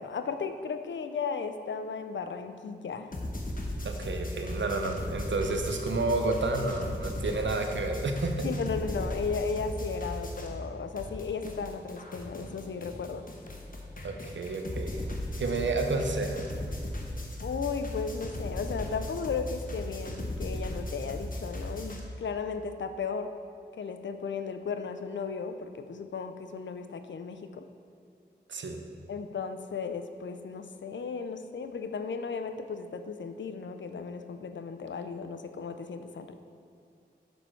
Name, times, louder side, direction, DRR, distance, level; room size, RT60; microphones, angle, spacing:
voice 1, 0.0-3.1 8.4-13.2 17.4-23.3 23.7-27.6 29.1-36.3, left 5 dB, 75° left, 8 dB, 0.5 m, -35 dB
sound 1, 3.1-10.7 11.0-22.0, left 1 dB, 45° left, 1.2 m, -37 dB
voice 2, 3.8-8.5 14.0-16.5 28.5-28.8, right 3 dB, 75° right, 4 dB, 0.8 m, -30 dB
6.7 x 6.3 x 4.5 m, 2.5 s
cardioid pair, 40°, 19 cm